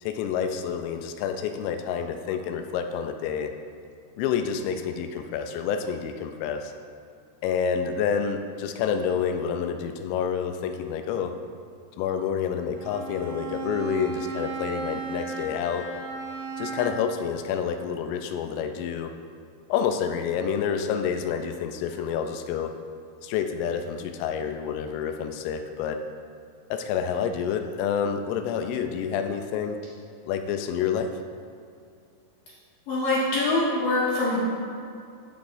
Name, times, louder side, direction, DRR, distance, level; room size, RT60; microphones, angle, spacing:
voice 1, 0.0-3.5 4.2-6.7 7.4-11.3 12.0-15.9 16.6-19.1 19.7-22.7 23.2-26.0 26.7-29.8 30.3-31.1, left 7 dB, 85° left, 6 dB, 3.1 m, -28 dB
Bowed string instrument, 12.7-17.2, right 4 dB, 75° right, 3.6 m, -35 dB
voice 2, 32.9-34.4, left 2 dB, 65° left, -7 dB, 2.4 m, -24 dB
13.5 x 7.3 x 2.6 m, 2.5 s
omnidirectional pair, 5.7 m